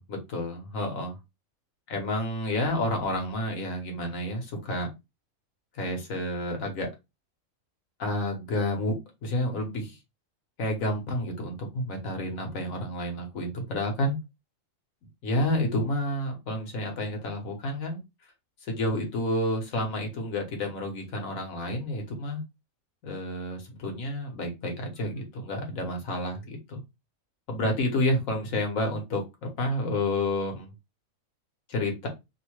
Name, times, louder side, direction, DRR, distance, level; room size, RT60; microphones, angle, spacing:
voice 1, 0.0-1.2 1.9-4.9 5.7-6.9 8.0-8.9 9.2-10.0 10.6-14.2 15.2-18.0 18.7-22.4 23.0-26.8 27.5-30.7 31.7-32.1, left 1 dB, 70° left, 1.3 m, -30 dB
3.0 x 2.1 x 3.0 m
omnidirectional pair, 1.5 m